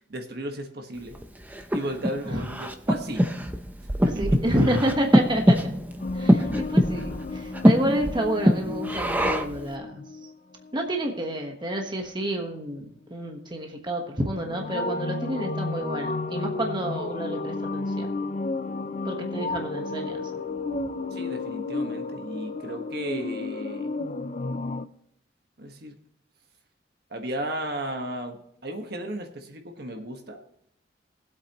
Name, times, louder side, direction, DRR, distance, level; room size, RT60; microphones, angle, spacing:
voice 1, 0.1-1.2 1.7-3.3 4.0-4.4 21.1-23.9 25.6-25.9 27.1-30.4, right 1 dB, 55° right, 4 dB, 1.4 m, -34 dB
Breathing, 1.1-9.6, equal, 10° right, 0.7 m, -24 dB
voice 2, 4.2-5.6 6.1-10.0 10.7-18.1 19.0-20.3, right 1 dB, 25° right, 2 dB, 1.2 m, -29 dB
sound 1, 6.0-10.3 10.6-10.9 11.8-11.9 14.3-24.9, left 3 dB, 40° left, 0.5 m, -32 dB
20.5 x 8.2 x 3.0 m, 0.74 s
head